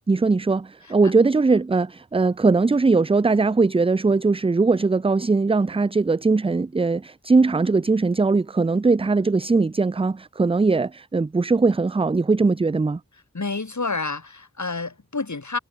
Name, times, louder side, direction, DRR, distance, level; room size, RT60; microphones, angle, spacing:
voice 1, 0.1-13.0, right 3 dB, 20° right, 0.3 m, -20 dB
voice 2, 13.3-15.6, left 3 dB, 65° left, 2.4 m, -29 dB
wide cardioid pair, 55°, 31 cm